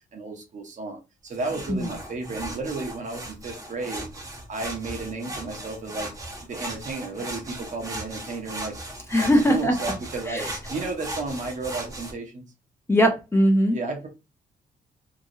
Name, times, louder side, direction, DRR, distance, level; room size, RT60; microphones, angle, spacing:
voice 1, 0.1-4.0 4.5-12.4 13.7-14.1, right 3 dB, 55° right, 1.0 m, -33 dB
sound 1, 1.3-12.1, right 1 dB, 20° right, 0.9 m, -37 dB
voice 2, 9.1-9.7 10.3-10.5 12.9-13.8, equal, 15° left, 0.8 m, -20 dB
3.0 x 2.9 x 2.7 m
cardioid pair, 125°, 16 cm